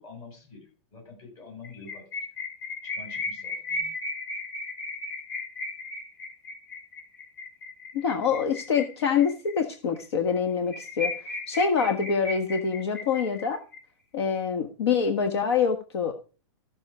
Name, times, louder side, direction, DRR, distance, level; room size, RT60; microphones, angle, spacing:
voice 1, 0.0-2.0 2.8-3.9, left 3 dB, 30° left, 1 dB, 7.6 m, -47 dB
sound 1, 1.6-9.6 10.0-10.1 10.3-10.4 10.7-13.8, left 2 dB, 45° left, 5.3 m, -35 dB
voice 2, 7.9-11.1 11.5-13.6 14.1-16.1, left 6 dB, 65° left, 6 dB, 1.4 m, -25 dB
15.0 x 6.3 x 4.9 m, 0.37 s
supercardioid pair, 170°, 15 cm